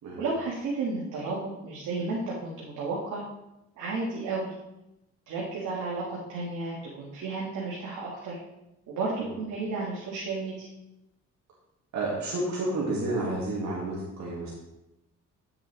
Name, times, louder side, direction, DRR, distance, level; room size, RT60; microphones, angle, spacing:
voice 1, 0.2-3.2 3.8-4.5 5.3-8.4 8.9-10.7, right 3 dB, 85° right, -5 dB, 2.1 m, -32 dB
voice 2, 11.9-14.5, right 2 dB, 65° right, -5 dB, 2.3 m, -30 dB
9.6 x 7.1 x 3.5 m, 0.89 s
cardioid pair, 90°, 30 cm